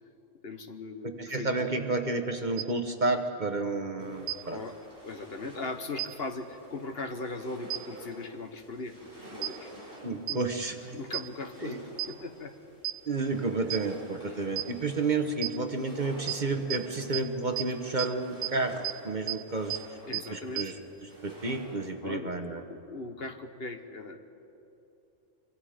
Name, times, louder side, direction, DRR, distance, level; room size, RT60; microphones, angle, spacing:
voice 1, 0.4-1.6 4.5-4.7 5.0-9.0 9.3-9.7 10.1-10.4 10.9-11.8 12.1-12.5 14.3-14.4 20.1-20.7 22.0-22.4 22.7-24.2, left 3 dB, 50° left, 7 dB, 1.3 m, -39 dB
voice 2, 1.2-4.6 10.0-11.0 11.6-11.8 13.1-19.8 20.1-20.8 21.0-22.6, right 3 dB, 40° right, 6 dB, 1.1 m, -31 dB
sound 1, 2.6-2.7 4.3-4.4 6.0-6.1 7.7-7.8 9.4-9.5 10.3-10.4 11.1-11.2 12.0-12.1 12.8-12.9 13.7-13.8 14.6-14.7 15.4-15.5 16.3-16.4 16.7-16.8 17.1-17.2 17.6-17.7 18.0-18.1 18.4-18.5 18.8-18.9 19.3-19.4 19.7-19.8 20.1-20.2 20.6-20.7, right 15 dB, 85° right, 1.2 m, -30 dB
sound 2, 4.0-21.9, right 1 dB, 15° right, 7.1 m, -50 dB
25.0 x 24.5 x 5.0 m, 2.9 s
omnidirectional pair, 1.3 m